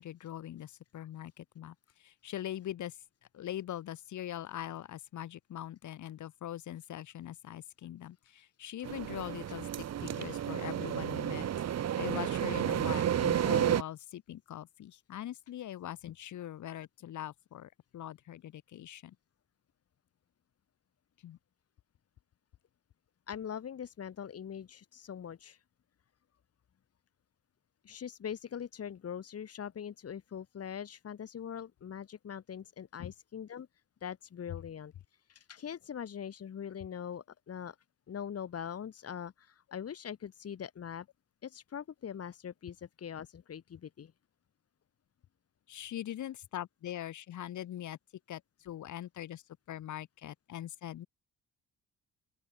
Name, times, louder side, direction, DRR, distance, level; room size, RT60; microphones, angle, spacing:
voice 1, 0.0-3.0 3.3-11.5 11.8-19.2 21.2-21.4 33.0-33.1 45.7-48.0 48.3-49.4 49.7-51.1, left 12 dB, 75° left, 4.0 m, -42 dB
sound 1, 8.8-13.8, right 10 dB, 55° right, 1.6 m, -31 dB
voice 2, 23.3-25.6 27.8-33.7 34.0-34.9 35.3-37.8 38.1-41.1 41.4-44.1, left 8 dB, 50° left, 3.5 m, -42 dB
open air
cardioid pair, 90°, 30 cm